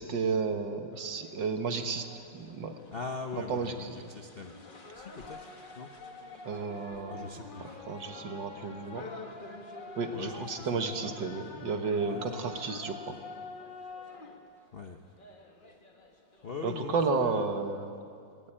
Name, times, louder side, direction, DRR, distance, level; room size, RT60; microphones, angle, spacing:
voice 1, 0.0-2.1 2.3-2.8 3.5-4.1 6.5-7.4 7.9-9.1 10.0-13.2 16.6-17.9, right 4 dB, 65° right, 6 dB, 2.0 m, -32 dB
sound 1, 0.9-16.6, left 3 dB, 30° left, 1.4 m, -47 dB
voice 2, 2.9-4.5 4.9-5.4 5.8-5.9 7.0-7.8 10.1-11.1 12.0-12.5 14.7-15.0 16.4-17.5, left 4 dB, 45° left, 4 dB, 0.7 m, -41 dB
18.5 x 18.0 x 8.8 m, 2.3 s
omnidirectional pair, 2.3 m